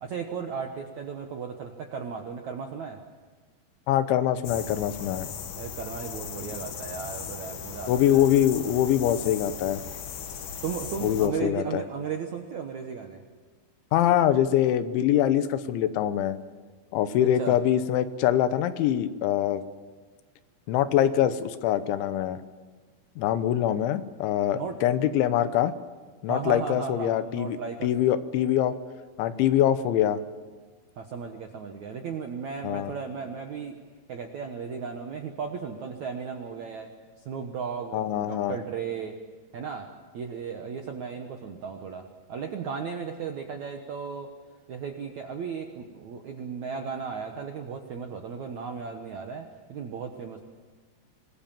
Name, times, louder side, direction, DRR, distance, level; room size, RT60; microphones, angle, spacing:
voice 1, 0.0-3.0 5.6-8.3 10.6-13.2 17.2-17.6 24.5-24.8 26.3-27.9 31.0-33.8 34.1-36.9 37.2-39.2 39.5-39.9 40.1-44.3 44.7-50.4, right 6 dB, 70° right, 4 dB, 1.7 m, -35 dB
voice 2, 3.9-5.3 7.9-9.8 11.0-11.8 13.9-16.4 16.9-19.6 20.7-22.4 23.2-25.7 26.2-27.6 27.8-28.7 29.2-30.2 32.6-32.9 37.9-38.6, left 11 dB, 85° left, 12 dB, 3.4 m, -24 dB
sound 1, 4.4-11.3, left 7 dB, 65° left, 3.3 m, -38 dB
25.0 x 20.0 x 7.4 m, 1.4 s
omnidirectional pair, 5.3 m